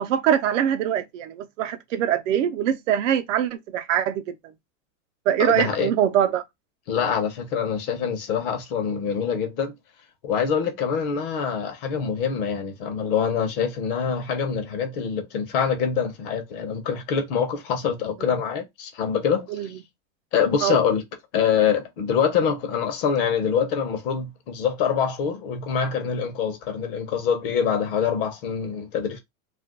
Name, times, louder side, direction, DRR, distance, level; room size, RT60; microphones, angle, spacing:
voice 1, 0.0-4.3 5.3-6.4 18.2-18.3 19.5-19.7 20.6-20.8, right 10 dB, 65° right, 0.6 m, -23 dB
voice 2, 5.4-5.9 6.9-9.7 10.2-19.5 20.3-21.0 21.3-29.2, left 7 dB, 45° left, 0.7 m, -25 dB
2.5 x 2.2 x 3.6 m
supercardioid pair, 150°, 41 cm